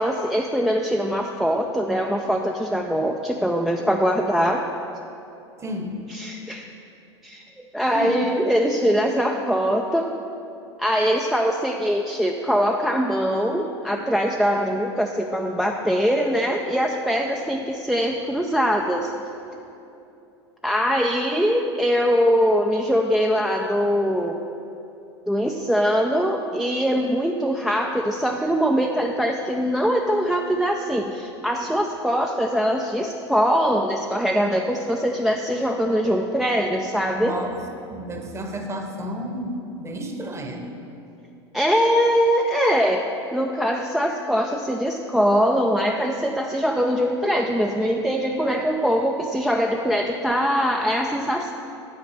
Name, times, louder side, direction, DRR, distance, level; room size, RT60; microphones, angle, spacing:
voice 1, 0.0-4.6 6.1-6.7 7.2-10.1 10.8-19.1 20.6-24.4 25.3-37.4 41.5-51.5, equal, 5° right, 1 dB, 0.4 m, -22 dB
voice 2, 5.6-6.0 7.9-8.3 37.2-37.6 37.9-40.7, right 1 dB, 20° right, 4 dB, 1.0 m, -31 dB
9.2 x 4.2 x 6.5 m, 2.8 s
hypercardioid pair, 90°, 15 cm